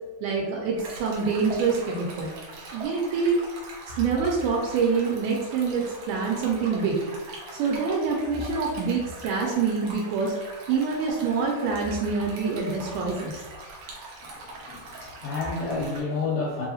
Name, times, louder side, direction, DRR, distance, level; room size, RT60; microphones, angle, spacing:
voice 1, 0.2-2.3 2.7-3.4 4.0-7.0 7.5-10.3 10.7-13.3, right 5 dB, 90° right, -1 dB, 2.1 m, -26 dB
Stream, 0.8-16.0, right 2 dB, 70° right, 1.4 m, -41 dB
voice 2, 14.2-16.7, left 3 dB, 75° left, -4 dB, 1.4 m, -30 dB
4.6 x 2.7 x 2.7 m, 1.2 s
omnidirectional pair, 3.5 m